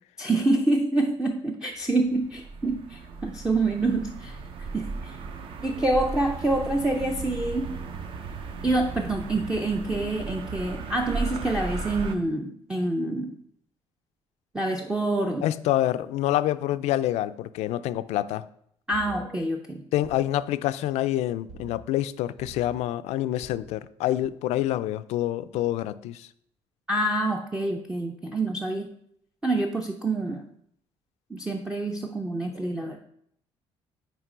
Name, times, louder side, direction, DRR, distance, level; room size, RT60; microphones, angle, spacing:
voice 1, 0.2-5.2 5.6-7.8 8.6-13.4 14.5-15.5 18.9-19.8 26.9-28.9 29.4-30.4 31.3-33.0, right 2 dB, 5° right, 0.4 m, -27 dB
sound 1, 1.8-12.2, right 4 dB, 50° right, 0.7 m, -36 dB
voice 2, 15.4-18.5 19.9-26.3, left 13 dB, 80° left, 0.4 m, -27 dB
sound 2, 18.9-19.1 20.0-20.3 21.5-21.8 22.4-22.7 23.4-23.7, right 4 dB, 85° right, 1.0 m, -45 dB
9.1 x 3.2 x 4.9 m
cardioid pair, 165°, 11 cm